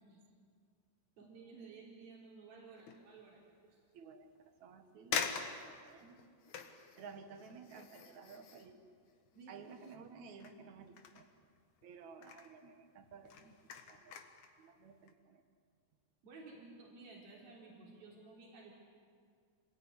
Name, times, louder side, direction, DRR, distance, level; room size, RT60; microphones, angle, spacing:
voice 1, 1.2-3.4 3.7-3.8 9.3-9.7 16.2-18.7, right 4 dB, 85° right, -3 dB, 5.9 m, -54 dB
sound 1, 2.8-3.1 3.7-3.8 4.6-4.7 5.1-10.1 10.4-11.8 12.1-12.6 13.0-14.5 14.9-15.1, left 6 dB, 60° left, 2.7 m, -44 dB
voice 2, 3.9-6.3 7.0-8.8 9.5-11.3 11.8-13.5 13.9-14.2 14.6-15.4, right 5 dB, 60° right, 7 dB, 2.8 m, -54 dB
27.0 x 20.0 x 9.9 m, 2.1 s
omnidirectional pair, 4.1 m